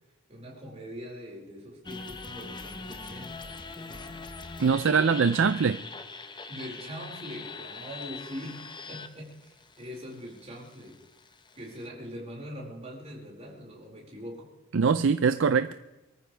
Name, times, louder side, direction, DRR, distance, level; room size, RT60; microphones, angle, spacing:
voice 1, 0.3-4.2 6.5-11.0 11.6-14.5, equal, 35° right, 5.1 m, -43 dB
sound 1, 1.8-11.9, left 4 dB, 25° left, 0.9 m, -43 dB
voice 2, 4.6-5.8 14.7-15.7, right 5 dB, 70° right, 0.5 m, -23 dB
23.5 x 14.0 x 3.4 m
head